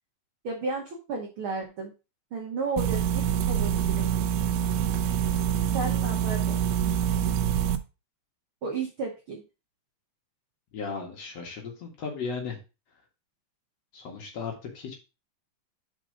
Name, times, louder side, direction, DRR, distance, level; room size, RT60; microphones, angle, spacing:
voice 1, 0.4-1.9 2.3-4.3 5.7-6.6 8.6-9.4, right 4 dB, 55° right, 1 dB, 1.5 m, -33 dB
sound 1, 2.8-7.8, right 9 dB, 80° right, 1.6 m, -26 dB
voice 2, 10.7-12.6 13.9-14.9, left 5 dB, 55° left, 1 dB, 2.7 m, -36 dB
5.3 x 5.1 x 5.0 m, 0.29 s
omnidirectional pair, 3.8 m